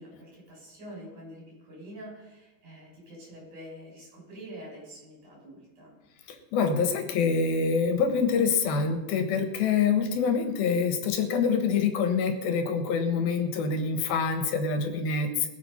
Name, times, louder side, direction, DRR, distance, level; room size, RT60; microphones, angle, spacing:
voice 1, 0.0-6.0, equal, 50° right, -3 dB, 8.0 m, -46 dB
voice 2, 6.5-15.5, left 5 dB, 70° left, 7 dB, 3.1 m, -26 dB
21.0 x 8.0 x 5.7 m, 1.2 s
omnidirectional pair, 4.6 m